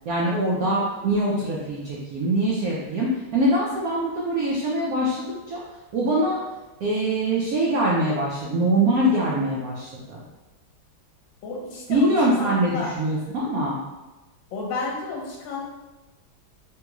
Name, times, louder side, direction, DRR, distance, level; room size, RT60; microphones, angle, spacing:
voice 1, 0.1-5.6 5.9-6.4 6.8-10.2 11.9-13.8, right 1 dB, 85° right, -5 dB, 0.7 m, -23 dB
voice 2, 0.6-1.1 11.4-12.9 14.5-15.7, left 3 dB, 70° left, -2 dB, 1.4 m, -32 dB
3.4 x 2.9 x 2.3 m, 1.1 s
omnidirectional pair, 2.2 m